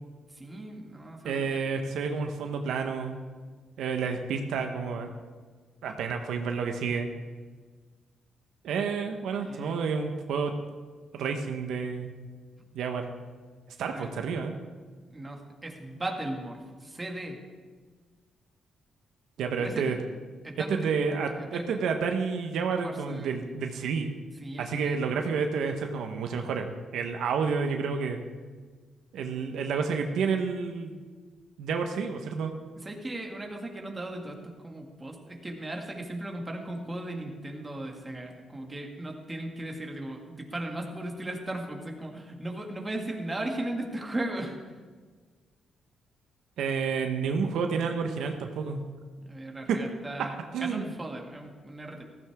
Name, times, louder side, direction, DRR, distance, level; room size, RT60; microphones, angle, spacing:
voice 1, 0.4-1.7 9.4-9.8 13.9-14.1 15.1-17.4 19.6-19.8 20.4-20.9 21.3-21.8 22.7-23.3 24.4-25.0 32.7-44.6 49.3-52.0, right 1 dB, 20° right, 1 dB, 2.2 m, -37 dB
voice 2, 1.2-3.2 3.8-5.1 5.8-7.1 8.6-10.5 11.1-12.1 12.7-13.1 13.8-14.6 19.4-20.0 20.7-24.1 24.6-28.2 29.1-30.9 31.6-32.5 46.6-48.8 49.7-49.8 50.5-50.9, right 5 dB, 85° right, 5 dB, 1.2 m, -30 dB
15.0 x 14.5 x 3.7 m, 1.5 s
cardioid pair, 105°, 0 cm